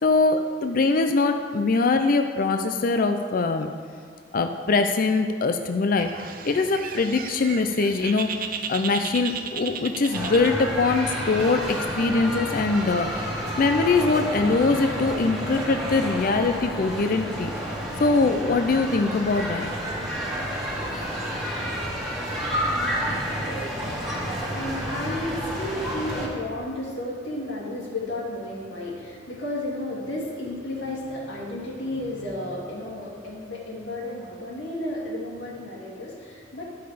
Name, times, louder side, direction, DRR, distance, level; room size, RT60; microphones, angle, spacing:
voice 1, 0.0-3.7 4.3-8.3 8.7-17.5 18.0-19.7, left 3 dB, 50° left, 6 dB, 0.5 m, -23 dB
Bird, 6.0-11.0, right 6 dB, 50° right, 0.6 m, -35 dB
sound 1, 10.1-26.3, equal, ahead, 1.9 m, -30 dB
voice 2, 23.5-36.7, left 1 dB, 85° left, -5 dB, 2.6 m, -33 dB
12.0 x 5.7 x 5.0 m, 2.2 s
head